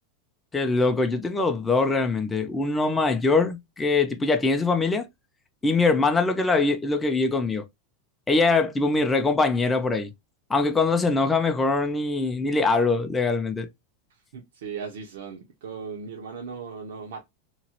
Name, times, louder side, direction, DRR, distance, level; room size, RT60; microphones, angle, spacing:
voice 1, 0.5-5.1 5.6-7.6 8.3-10.1 10.5-13.7, left 3 dB, 10° left, 0.5 m, -23 dB
voice 2, 14.1-17.3, right 6 dB, 80° right, 0.8 m, -38 dB
3.0 x 2.3 x 2.8 m
supercardioid pair, 135°, 0 cm